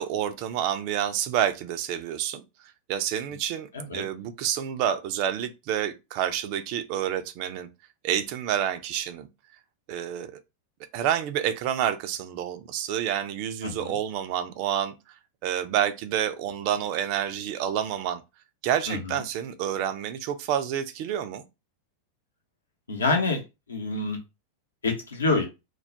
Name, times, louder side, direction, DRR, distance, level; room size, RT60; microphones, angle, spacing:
voice 1, 0.0-2.4 2.9-7.7 8.0-9.3 9.9-10.3 10.9-14.9 15.4-18.2 18.6-21.4, right 10 dB, 45° right, 0.3 m, -28 dB
voice 2, 13.6-13.9 18.9-19.2 22.9-23.4 23.7-24.2 24.8-25.5, left 3 dB, 75° left, 0.7 m, -27 dB
2.2 x 2.0 x 2.6 m
figure-of-eight pair, 90°, 0 cm